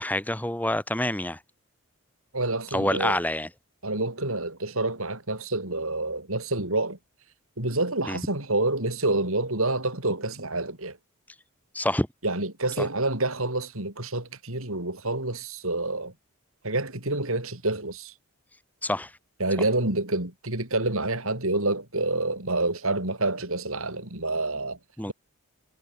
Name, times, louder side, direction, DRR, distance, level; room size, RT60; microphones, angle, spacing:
voice 1, 0.0-1.4 2.7-3.5 8.1-8.2 11.7-12.1 12.8-12.9 18.8-19.1 25.0-25.1, left 1 dB, 5° left, 3.0 m, -27 dB
voice 2, 2.3-3.2 3.8-7.0 7.6-11.0 12.2-16.1 16.6-18.1 19.4-24.8, right 2 dB, 65° right, 5.1 m, -28 dB
head